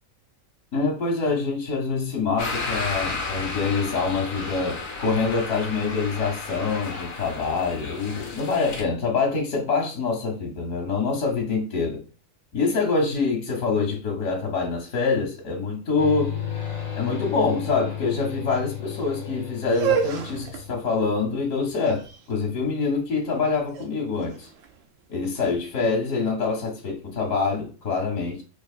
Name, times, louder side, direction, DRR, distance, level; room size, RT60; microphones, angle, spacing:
voice 1, 0.7-12.0 12.5-16.4 17.0-24.5 25.1-28.4, left 4 dB, 85° left, 1.3 m, -25 dB
sound 1, 2.4-8.8, left 3 dB, 60° left, 1.2 m, -33 dB
sound 2, 16.0-21.5, left 8 dB, 40° left, 0.7 m, -34 dB
sound 3, 19.6-25.6, right 7 dB, 75° right, 1.0 m, -32 dB
4.4 x 2.6 x 2.4 m
omnidirectional pair, 1.4 m